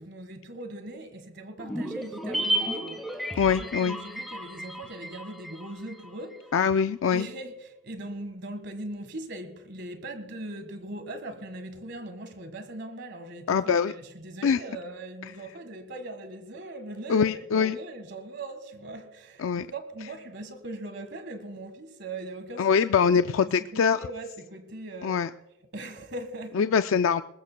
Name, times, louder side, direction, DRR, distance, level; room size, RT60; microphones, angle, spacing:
voice 1, 0.0-3.0 3.6-6.5 7.1-25.2 25.7-26.7, right 2 dB, 55° right, 1.6 m, -40 dB
sound 1, 1.6-6.1 6.3-6.4, right 1 dB, ahead, 1.4 m, -33 dB
voice 2, 3.3-4.0 6.5-7.3 13.5-13.9 14.4-14.6 17.1-17.8 19.4-19.7 22.6-24.0 25.0-25.3 26.6-27.2, left 6 dB, 75° left, 0.4 m, -23 dB
20.5 x 19.5 x 2.2 m
head